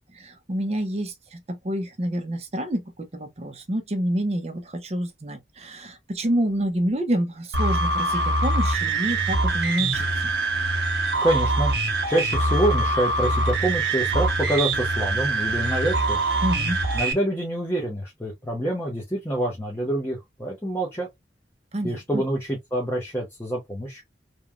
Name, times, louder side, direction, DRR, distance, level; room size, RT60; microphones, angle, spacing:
voice 1, 0.2-10.3 16.4-16.8 21.7-22.2, right 1 dB, 35° right, 0.6 m, -28 dB
sound 1, 7.5-17.1, right 2 dB, 75° right, 0.8 m, -24 dB
voice 2, 11.2-11.8 12.1-16.2 16.9-21.1 21.8-24.0, right 1 dB, 15° left, 0.7 m, -26 dB
3.0 x 2.2 x 2.4 m
head